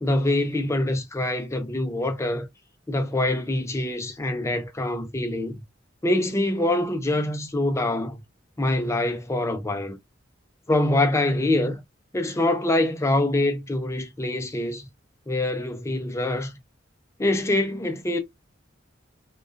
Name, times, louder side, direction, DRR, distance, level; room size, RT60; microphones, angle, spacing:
voice 1, 0.0-2.5 2.9-5.6 6.0-8.2 8.6-10.0 10.7-11.8 12.1-14.8 15.3-16.5 17.2-18.2, left 1 dB, 15° left, 0.4 m, -25 dB
2.3 x 2.2 x 2.4 m
head